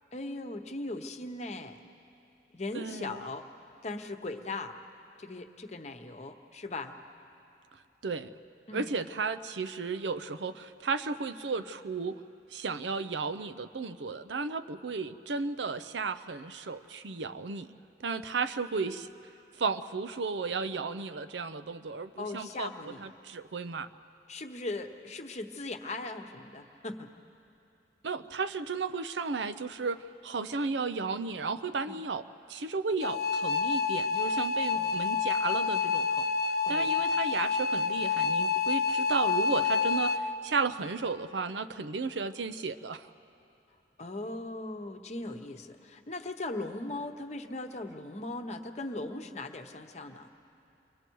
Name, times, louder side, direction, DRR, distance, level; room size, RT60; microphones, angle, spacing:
voice 1, 0.1-1.8 2.5-3.5 3.8-4.7 5.2-7.0 8.7-8.9 22.2-23.0 24.3-27.1 31.9-32.0 34.7-35.0 36.6-36.9 44.0-50.3, left 2 dB, 40° left, 6 dB, 0.9 m, -39 dB
voice 2, 2.7-3.2 8.0-8.3 8.7-12.2 12.5-17.7 18.0-19.1 19.6-23.9 28.0-32.2 32.5-36.3 36.7-43.1, right 4 dB, 90° right, 11 dB, 0.6 m, -34 dB
sound 1, 33.0-40.2, left 5 dB, 55° left, 0.6 m, -28 dB
28.5 x 23.0 x 4.6 m, 2.7 s
head